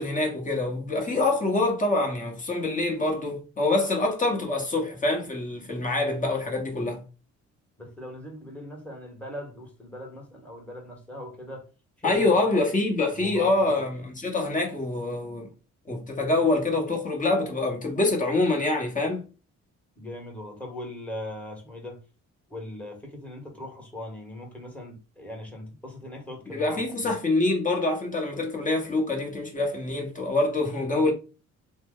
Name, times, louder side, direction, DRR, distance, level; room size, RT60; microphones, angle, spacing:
voice 1, 0.0-7.0 12.0-15.5 15.9-19.3 26.5-31.1, left 2 dB, 25° left, 1.1 m, -25 dB
voice 2, 7.8-11.7 12.0-12.3 13.1-13.8 20.0-22.0 22.5-27.1, left 1 dB, 5° left, 1.3 m, -40 dB
2.8 x 2.1 x 3.6 m
cardioid pair, 90°, 30 cm